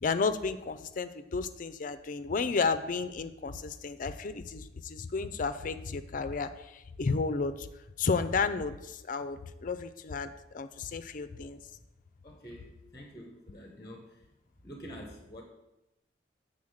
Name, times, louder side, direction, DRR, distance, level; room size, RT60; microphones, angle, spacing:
voice 1, 0.0-7.7 8.0-11.6, left 4 dB, 45° left, 11 dB, 0.4 m, -32 dB
voice 2, 12.2-14.2 14.6-15.4, equal, 20° left, 2 dB, 0.9 m, -47 dB
7.3 x 3.9 x 6.3 m, 0.94 s
head